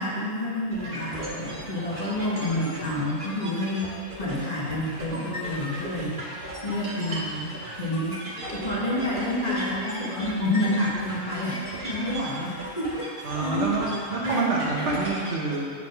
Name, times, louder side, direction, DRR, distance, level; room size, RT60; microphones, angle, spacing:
voice 1, 0.0-8.2 8.5-13.7 14.2-14.9, left 1 dB, 30° left, -6 dB, 1.0 m, -29 dB
sound 1, 0.7-15.4, right 1 dB, 35° right, 1.5 m, -37 dB
voice 2, 13.2-15.7, right 3 dB, 55° right, -3 dB, 1.1 m, -28 dB
7.8 x 3.7 x 5.3 m, 2.3 s
omnidirectional pair, 1.6 m